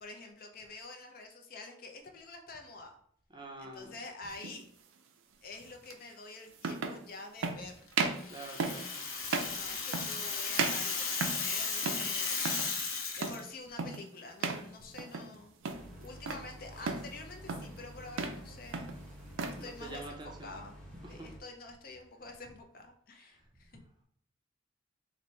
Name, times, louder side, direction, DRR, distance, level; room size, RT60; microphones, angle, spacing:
voice 1, 0.0-2.9 3.6-4.6 5.4-7.9 9.5-12.5 13.2-18.9 19.6-20.8 21.1-23.7, left 3 dB, 45° left, 4 dB, 0.5 m, -48 dB
voice 2, 3.3-3.9 8.3-9.0 19.5-20.6 21.0-21.3, right 2 dB, 20° right, 1 dB, 0.6 m, -46 dB
sound 1, 4.4-4.6 5.9-6.0 6.6-7.0 7.4-7.6 7.9-8.3 8.6-8.9 9.3-9.6 9.9-10.3 10.6-11.5 11.8-12.1 12.4-12.7 13.2-13.5 13.8-14.1 14.4-14.7 15.0-15.3 15.6-16.5 16.9-17.1 17.5-17.8 18.1-18.4 18.7-19.6, right 4 dB, 75° right, 0.5 m, -35 dB
Rattle (instrument), 8.2-13.4, left 5 dB, 85° left, 0.8 m, -35 dB
sound 2, 15.7-21.4, equal, 5° left, 0.9 m, -50 dB
4.2 x 2.6 x 3.2 m, 0.65 s
head